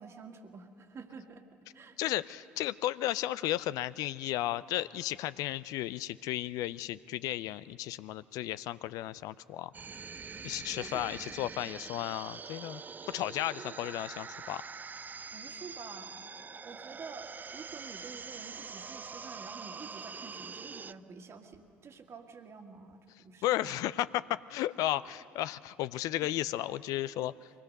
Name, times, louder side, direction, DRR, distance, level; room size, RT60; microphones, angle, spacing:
voice 1, 0.0-1.5 1.7-2.0 10.8-11.1 13.6-13.8 15.3-16.3 16.6-23.8 26.2-26.3, right 5 dB, 45° right, 4 dB, 1.9 m, -49 dB
voice 2, 2.0-9.7 10.4-12.8 13.1-14.6 23.4-27.5, left 14 dB, 65° left, 17 dB, 0.4 m, -34 dB
sound 1, 9.7-20.9, right 5 dB, 25° right, 0.4 m, -44 dB
23.0 x 19.0 x 6.6 m, 2.6 s
hypercardioid pair, 60°, 7 cm